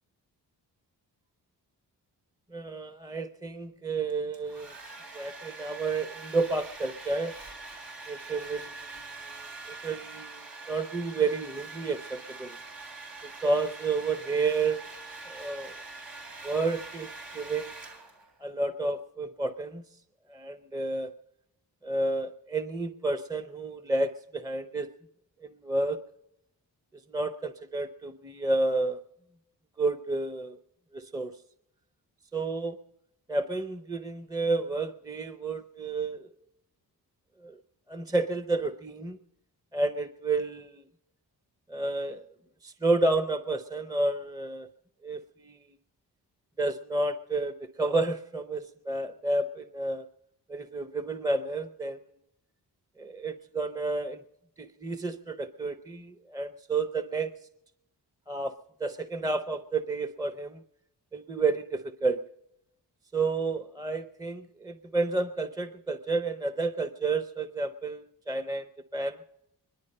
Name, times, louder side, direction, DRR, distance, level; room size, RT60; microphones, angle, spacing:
voice 1, 2.5-4.7 5.1-7.3 8.1-12.6 13.2-14.8 15.3-15.8 16.4-17.7 18.4-19.8 20.3-21.1 21.8-24.9 25.4-26.0 27.1-29.0 29.8-30.6 30.9-31.4 32.3-32.8 33.3-36.3 37.4-37.6 37.9-39.2 39.7-40.8 41.7-42.3 42.6-44.7 45.0-45.6 46.6-50.1 50.5-52.0 53.0-54.2 54.6-57.3 58.3-60.6 61.1-62.2 63.1-69.2, right 3 dB, 10° right, 11 dB, 0.6 m, -31 dB
Domestic sounds home sounds, 4.1-18.4, right 3 dB, 80° right, 3.3 m, -44 dB
22.5 x 11.0 x 5.3 m, 0.84 s
cardioid pair, 55°, 42 cm